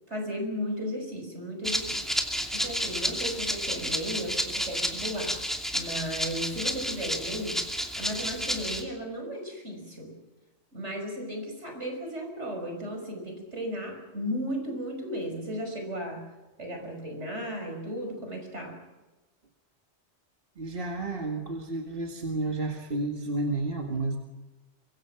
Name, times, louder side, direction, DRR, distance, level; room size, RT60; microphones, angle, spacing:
voice 1, 0.1-2.0 2.5-5.4 5.7-7.6 8.0-10.1 10.7-16.2 16.6-18.8, equal, 75° right, 3 dB, 6.1 m, -35 dB
Rattle (instrument), 1.6-8.8, equal, ahead, 2.7 m, -31 dB
voice 2, 20.6-24.2, right 2 dB, 50° right, 2 dB, 2.1 m, -31 dB
24.5 x 23.5 x 5.9 m, 1.1 s
omnidirectional pair, 1.2 m